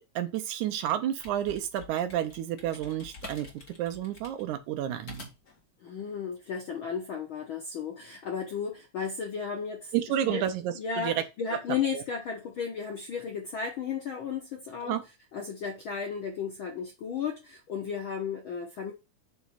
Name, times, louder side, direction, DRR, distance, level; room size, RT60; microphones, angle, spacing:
voice 1, 0.2-5.3 9.9-11.2 11.9-12.0 14.8-15.0, right 11 dB, 75° right, 2.2 m, -31 dB
sound 1, 1.2-5.6, left 3 dB, 35° left, 1.8 m, -48 dB
voice 2, 5.8-9.9 10.2-10.4 10.7-15.0 15.3-18.9, left 6 dB, 70° left, 1.2 m, -34 dB
8.2 x 3.1 x 5.7 m
omnidirectional pair, 3.6 m